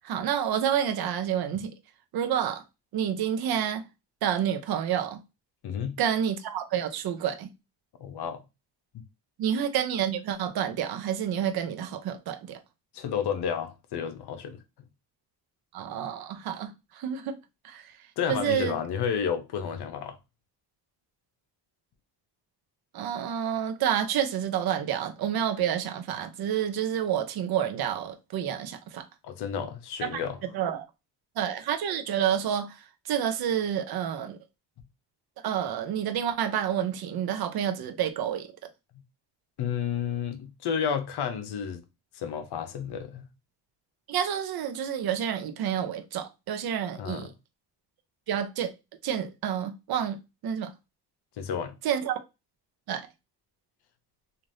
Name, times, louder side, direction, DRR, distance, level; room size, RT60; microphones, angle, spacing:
voice 1, 0.0-1.7 2.1-2.6 2.9-3.9 4.2-5.2 6.0-7.5 9.4-12.6 15.7-17.3 17.6-17.9 18.3-18.8 22.9-29.1 30.0-30.2 30.5-30.9 31.4-32.8 33.1-34.4 35.4-38.5 44.1-47.3 48.3-48.7 49.0-50.7 51.8-52.2 52.9-53.1, right 9 dB, 60° right, 0.6 m, -29 dB
voice 2, 5.6-6.0 8.0-8.4 12.9-14.6 18.2-20.2 29.2-30.4 39.6-41.8 42.1-43.3 46.9-47.3 51.4-51.8, left 7 dB, 65° left, 0.7 m, -31 dB
3.2 x 2.5 x 2.5 m
cardioid pair, 95°, 42 cm